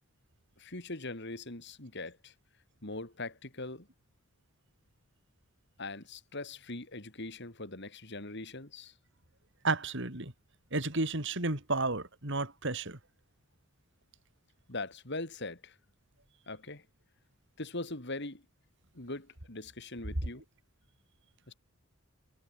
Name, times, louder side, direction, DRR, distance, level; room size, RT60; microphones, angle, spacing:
voice 1, 0.6-2.3 2.8-3.9 5.8-8.9 14.7-15.8 16.5-16.8 17.6-18.4 18.9-20.4 21.5-21.6, left 2 dB, 55° left, 3.5 m, -41 dB
voice 2, 9.6-10.3 10.7-13.0, right 3 dB, 60° right, 3.9 m, -32 dB
head